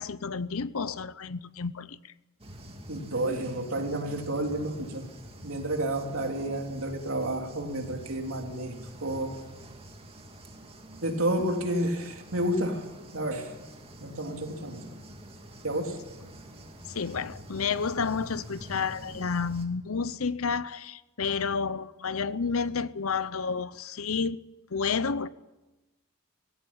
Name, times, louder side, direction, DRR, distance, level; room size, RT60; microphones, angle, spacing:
voice 1, 0.0-2.0 16.9-24.4 24.7-25.3, left 5 dB, 75° left, 0.8 m, -30 dB
sound 1, 2.4-19.7, equal, 25° right, 2.3 m, -47 dB
voice 2, 2.9-5.1 5.4-8.8 9.0-9.5 11.0-13.5 14.0-15.0 15.6-16.1, right 1 dB, 70° right, 3.3 m, -30 dB
18.0 x 16.5 x 8.9 m
head